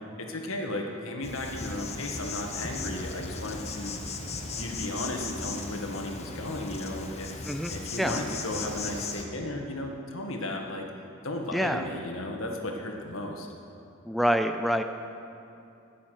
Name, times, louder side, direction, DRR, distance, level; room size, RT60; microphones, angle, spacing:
voice 1, 0.2-4.0 4.5-7.4 7.7-10.8 11.2-13.5, left 1 dB, 80° left, 2 dB, 1.7 m, -35 dB
Insect, 1.2-9.2, left 3 dB, 30° left, 1.1 m, -37 dB
voice 2, 7.5-8.1 11.5-11.8 14.1-14.8, equal, ahead, 6 dB, 0.4 m, -27 dB
13.5 x 7.4 x 9.2 m, 2.7 s
head